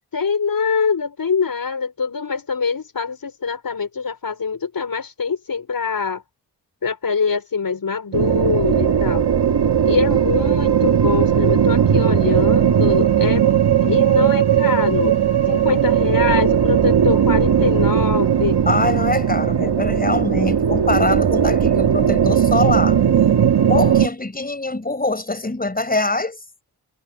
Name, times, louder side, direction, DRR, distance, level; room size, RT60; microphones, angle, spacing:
voice 1, 0.1-6.2 6.8-9.3 9.8-15.2 15.5-18.6, left 5 dB, 60° left, 6.0 m, -23 dB
sound 1, 8.1-24.1, right 8 dB, 80° right, 2.2 m, -17 dB
voice 2, 18.7-23.0 23.7-26.4, left 2 dB, 20° left, 5.7 m, -23 dB
wide cardioid pair, 100°, 39 cm